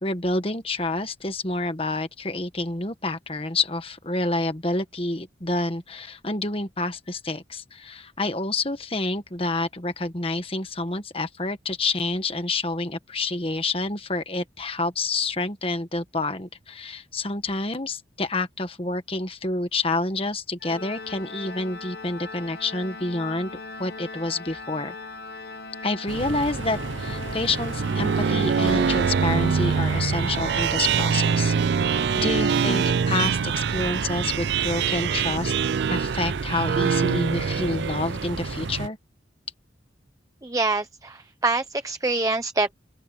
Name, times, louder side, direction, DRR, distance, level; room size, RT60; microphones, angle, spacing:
voice 1, 0.0-23.5 23.8-24.9 25.8-35.5 35.9-39.0, left 2 dB, 30° left, 1.5 m, -28 dB
Organ, 20.6-31.3, left 3 dB, 55° left, 1.3 m, -39 dB
sound 1, 26.1-38.9, right 3 dB, 80° right, 0.8 m, -33 dB
sound 2, 27.5-38.4, right 6 dB, 60° right, 0.3 m, -24 dB
voice 2, 40.4-42.7, right 3 dB, 15° right, 0.7 m, -25 dB
open air
head